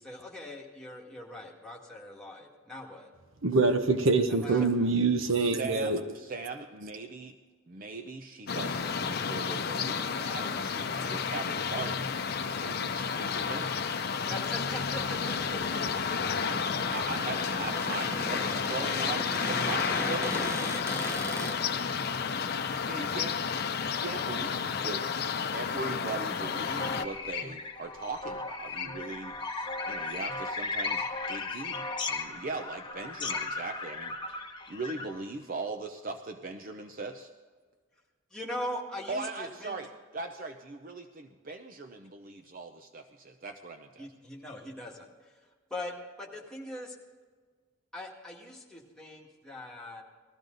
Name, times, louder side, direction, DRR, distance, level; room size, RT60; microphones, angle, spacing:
voice 1, 0.0-3.1 4.3-4.9 14.3-16.3 38.3-39.8 44.0-45.3 45.7-47.0 47.9-50.0, left 1 dB, 5° left, -3 dB, 1.9 m, -41 dB
voice 2, 3.4-6.0, right 3 dB, 80° right, 8 dB, 1.0 m, -25 dB
voice 3, 5.4-7.4 7.7-13.8 16.9-20.6 22.9-23.4 24.0-25.0 25.5-31.8 32.1-34.1 34.7-37.3 39.1-44.1, right 3 dB, 45° right, 6 dB, 0.6 m, -40 dB
sound 1, 8.5-27.0, left 6 dB, 50° left, 0.6 m, -31 dB
Cupboard open or close, 14.9-21.6, equal, 15° right, 1.0 m, -39 dB
sound 2, 26.5-35.2, left 3 dB, 25° left, 1.0 m, -36 dB
19.0 x 13.5 x 3.9 m, 1.5 s
head